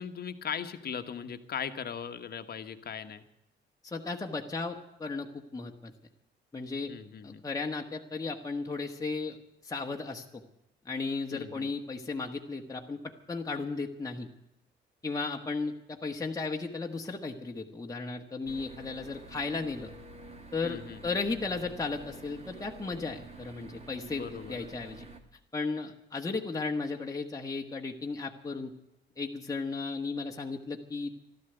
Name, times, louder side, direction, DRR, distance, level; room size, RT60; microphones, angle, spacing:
voice 1, 0.0-3.2 6.9-7.4 11.3-11.7 20.6-21.0 24.1-24.7, left 7 dB, 50° left, 8 dB, 1.3 m, -39 dB
voice 2, 3.8-5.9 6.5-6.9 7.2-9.4 9.6-10.4 10.8-14.3 15.0-19.9 20.5-25.1 25.5-28.7 29.2-31.2, left 3 dB, 15° left, 1 dB, 1.4 m, -35 dB
sound 1, 18.5-25.2, right 2 dB, 35° right, 2.2 m, -48 dB
13.0 x 12.5 x 8.0 m, 0.88 s
cardioid pair, 90°, 20 cm